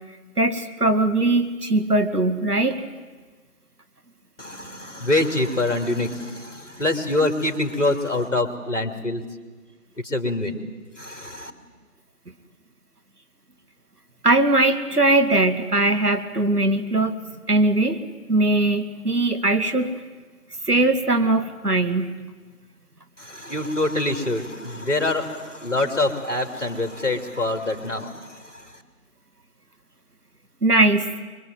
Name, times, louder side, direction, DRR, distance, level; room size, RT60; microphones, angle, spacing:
voice 1, 0.4-2.8 14.2-17.1 17.5-18.0 18.3-19.9 20.7-22.1 30.6-31.1, right 2 dB, 80° right, 8 dB, 2.4 m, -20 dB
voice 2, 4.4-9.2 10.0-10.6 11.0-11.5 23.2-28.8, left 2 dB, 50° left, 7 dB, 2.8 m, -25 dB
24.5 x 22.5 x 9.3 m, 1.4 s
figure-of-eight pair, 165°, 45 cm